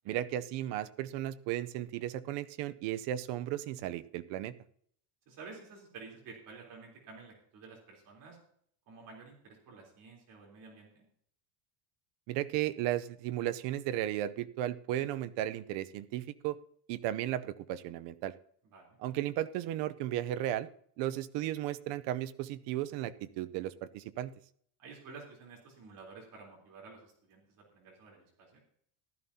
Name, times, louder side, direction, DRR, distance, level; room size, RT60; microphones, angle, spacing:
voice 1, 0.1-4.5 12.3-16.6 16.9-18.3 19.0-20.7 21.0-24.3, right 13 dB, 65° right, 14 dB, 0.7 m, -35 dB
voice 2, 5.3-8.4 8.9-11.1 18.7-18.9 24.8-28.6, right 4 dB, 45° right, -1 dB, 3.7 m, -51 dB
15.0 x 12.5 x 2.8 m, 0.64 s
cardioid pair, 165°, 46 cm